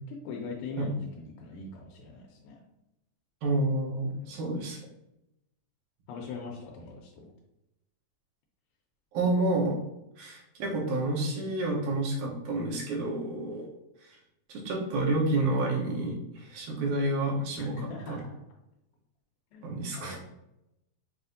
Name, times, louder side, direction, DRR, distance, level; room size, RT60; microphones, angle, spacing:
voice 1, 0.1-2.6 4.2-4.5 6.1-7.3 17.6-18.4 19.5-20.2, left 4 dB, 90° left, -1 dB, 2.1 m, -41 dB
voice 2, 3.4-4.8 9.1-9.8 10.2-13.7 14.0-14.2 14.5-17.8 18.1-18.2 19.6-20.2, right 2 dB, 80° right, -2 dB, 2.3 m, -29 dB
6.0 x 2.5 x 2.6 m, 0.88 s
omnidirectional pair, 3.5 m